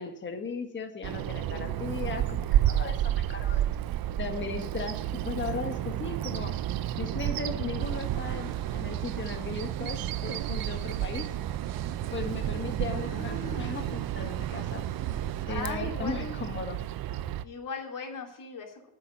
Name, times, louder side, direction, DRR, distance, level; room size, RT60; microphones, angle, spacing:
voice 1, 0.0-3.6 4.2-6.5 7.0-11.3 12.1-14.8 15.5-16.8, left 4 dB, 20° left, 5 dB, 1.6 m, -37 dB
Bird vocalization bird call bird song, 1.0-17.4, right 12 dB, 45° right, 0.7 m, -31 dB
sound 1, 7.8-15.5, right 9 dB, 90° right, 1.3 m, -47 dB
voice 2, 12.9-13.7 15.5-16.4 17.4-18.9, left 4 dB, 40° left, 2 dB, 3.2 m, -39 dB
9.3 x 7.6 x 9.0 m, 0.77 s
supercardioid pair, 80°, 49 cm